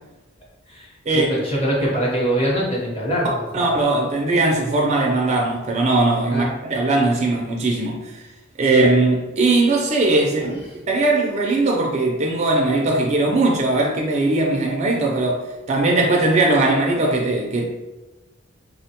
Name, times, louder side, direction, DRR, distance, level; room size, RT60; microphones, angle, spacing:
voice 1, 0.7-3.6 6.3-6.5 8.6-8.7 10.4-10.6 14.4-14.6, equal, 30° left, -5 dB, 0.9 m, -24 dB
voice 2, 3.2-8.1 8.6-10.5 10.9-15.4 15.7-17.7, right 2 dB, 35° right, -1 dB, 0.4 m, -19 dB
3.7 x 2.1 x 2.8 m, 1.1 s
head